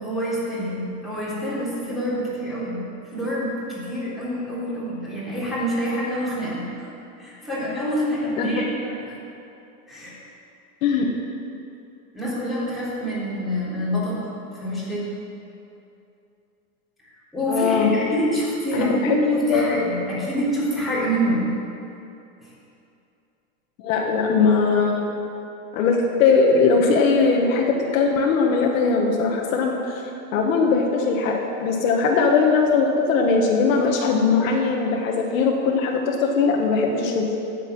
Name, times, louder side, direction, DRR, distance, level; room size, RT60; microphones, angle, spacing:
voice 1, 0.0-6.9 7.2-9.0 9.9-10.2 12.1-14.3 14.6-15.1 17.3-21.5 22.4-22.5, equal, ahead, -10 dB, 3.8 m, -26 dB
voice 2, 17.5-17.9 18.7-18.9 19.5-19.8 23.8-25.1 25.7-30.0 30.3-37.3, left 4 dB, 65° left, 0 dB, 1.9 m, -20 dB
17.5 x 7.7 x 6.2 m, 2.7 s
supercardioid pair, 160°, 43 cm